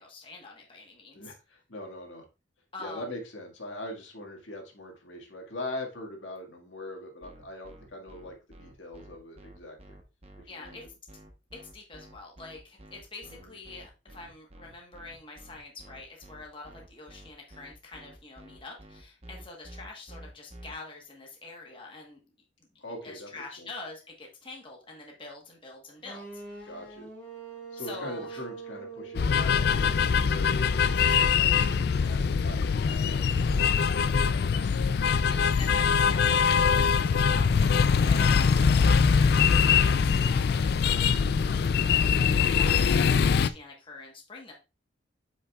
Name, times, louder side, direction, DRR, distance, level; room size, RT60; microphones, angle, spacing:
voice 1, 0.0-1.3 2.7-3.1 10.5-10.8 11.7-22.2 23.0-26.8 27.8-28.4 30.8-31.2 34.8-44.5, left 3 dB, 25° left, -1 dB, 1.2 m, -45 dB
voice 2, 1.1-2.3 2.8-9.9 10.4-10.9 13.3-13.6 22.8-23.7 26.6-27.1 27.7-30.0 30.3-34.4, left 1 dB, 80° left, 1 dB, 1.9 m, -42 dB
sound 1, 7.2-20.7, right 1 dB, 30° right, 1.0 m, -50 dB
sound 2, 26.0-31.9, right 4 dB, 10° left, 2.6 m, -44 dB
sound 3, 29.1-43.5, left 6 dB, 55° left, 0.3 m, -23 dB
8.1 x 5.3 x 2.3 m, 0.29 s
head